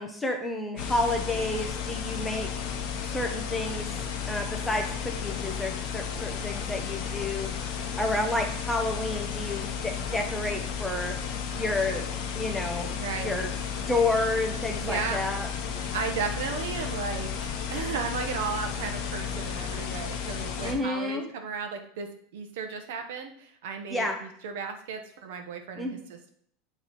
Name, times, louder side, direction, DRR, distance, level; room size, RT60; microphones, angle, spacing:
voice 1, 0.0-2.5 3.1-3.9 4.3-7.5 8.0-11.1 11.5-12.1 12.3-13.5 13.8-15.5 20.6-21.2 23.9-24.2 25.8-26.0, left 2 dB, 5° left, 2 dB, 0.6 m, -30 dB
sound 1, 0.8-20.7, left 7 dB, 45° left, 0.9 m, -33 dB
voice 2, 12.9-13.3 14.8-15.4 15.9-26.3, right 5 dB, 65° right, 6 dB, 0.9 m, -35 dB
8.0 x 3.1 x 4.1 m, 0.64 s
supercardioid pair, 180°, 0 cm